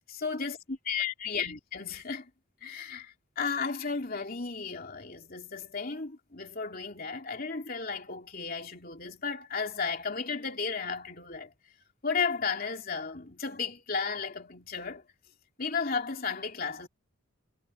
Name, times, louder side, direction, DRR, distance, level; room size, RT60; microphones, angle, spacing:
voice 1, 0.1-2.3 2.6-11.5 12.0-15.0 15.6-16.9, left 5 dB, 40° left, 3.1 m, -34 dB
head